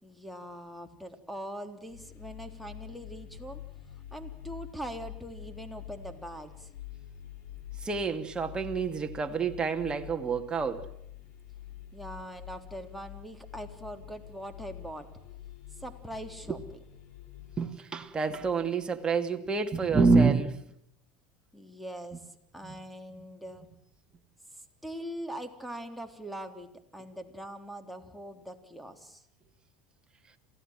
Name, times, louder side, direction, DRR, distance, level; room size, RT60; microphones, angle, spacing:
voice 1, 0.0-3.6 4.1-6.7 11.9-15.1 15.8-16.6 21.5-22.3 22.5-23.6 24.5-29.2, equal, ahead, 3.7 m, -42 dB
sound 1, 1.9-17.6, left 11 dB, 55° left, 6.7 m, -46 dB
voice 2, 7.8-10.9 16.5-16.6 17.6-20.6 22.6-22.8, right 4 dB, 20° right, 2.6 m, -27 dB
27.5 x 17.0 x 7.7 m
hypercardioid pair, 90°, 4 cm